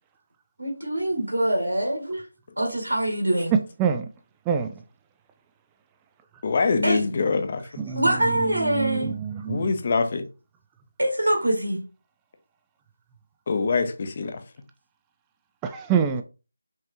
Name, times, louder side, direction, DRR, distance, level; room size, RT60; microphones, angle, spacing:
voice 1, 0.6-2.3 2.6-3.5 6.8-7.1 7.9-9.1 11.0-11.8, right 1 dB, 85° right, 1.7 m, -24 dB
voice 2, 6.4-7.6 9.5-10.3 13.5-14.4, left 4 dB, 35° left, 0.6 m, -24 dB
voice 3, 8.4-9.7 15.7-16.2, right 7 dB, 10° right, 0.3 m, -26 dB
5.4 x 2.4 x 2.9 m
figure-of-eight pair, 165°, 0 cm